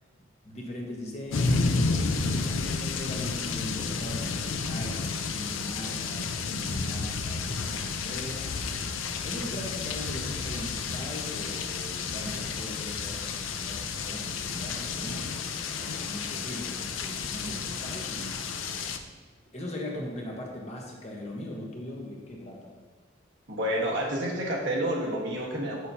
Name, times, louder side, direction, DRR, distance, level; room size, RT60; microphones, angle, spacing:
voice 1, 0.4-8.5 9.2-18.4 19.5-22.7, left 1 dB, 35° left, -1 dB, 1.1 m, -39 dB
sound 1, 1.3-19.0, left 4 dB, 80° left, 0.5 m, -31 dB
voice 2, 23.5-25.9, equal, 65° right, -3 dB, 1.4 m, -29 dB
7.3 x 6.1 x 2.8 m, 1.4 s
head